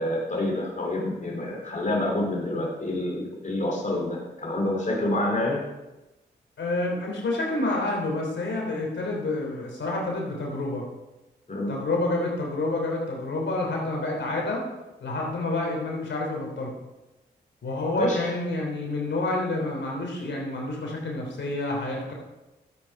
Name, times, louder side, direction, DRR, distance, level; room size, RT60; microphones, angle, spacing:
voice 1, 0.0-5.7 11.5-11.8 18.0-18.2, left 1 dB, 40° left, -1 dB, 2.9 m, -27 dB
voice 2, 6.6-10.9 11.7-14.7 15.0-16.7 17.6-22.1, left 2 dB, 65° left, -1 dB, 3.4 m, -28 dB
12.0 x 8.4 x 4.7 m, 1.0 s
supercardioid pair, 40°, 20 cm